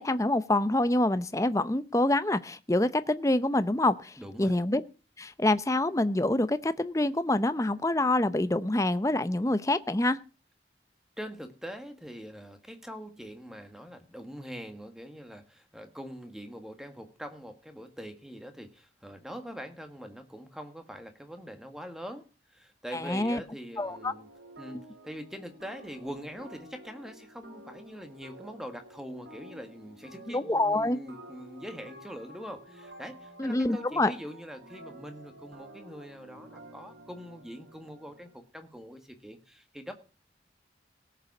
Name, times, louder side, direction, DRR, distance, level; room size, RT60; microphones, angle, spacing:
voice 1, 0.0-4.8 5.2-10.2 22.9-23.4 23.8-24.1 30.3-31.0 33.4-34.1, left 1 dB, 15° left, 13 dB, 0.6 m, -26 dB
voice 2, 4.2-4.6 11.2-24.3 24.6-39.9, equal, 5° right, 7 dB, 1.5 m, -43 dB
sound 1, 23.8-38.4, right 1 dB, 80° right, 3.0 m, -51 dB
18.0 x 6.8 x 6.0 m, 0.35 s
head